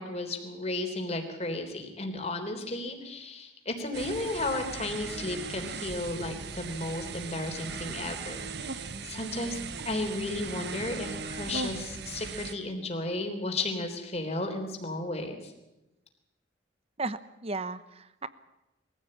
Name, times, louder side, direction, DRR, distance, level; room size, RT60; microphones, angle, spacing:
voice 1, 0.0-9.6 9.8-15.5, left 2 dB, 35° left, 5 dB, 3.6 m, -34 dB
sound 1, 3.9-12.5, right 4 dB, 60° right, 1.2 m, -38 dB
voice 2, 17.0-18.3, right 3 dB, 35° right, 14 dB, 1.0 m, -35 dB
22.5 x 15.5 x 8.8 m, 0.96 s
head